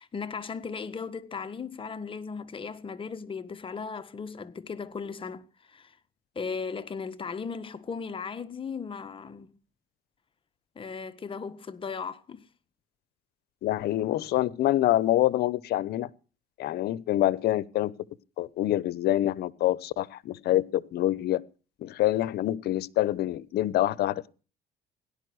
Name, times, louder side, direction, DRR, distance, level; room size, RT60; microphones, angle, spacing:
voice 1, 0.0-6.0 6.3-9.5 10.7-12.5, left 5 dB, 30° left, 1.6 m, -37 dB
voice 2, 13.6-16.1 16.6-17.9 18.4-21.4 21.8-24.3, left 14 dB, 70° left, 0.9 m, -26 dB
17.5 x 11.5 x 6.3 m
cardioid pair, 110°, 17 cm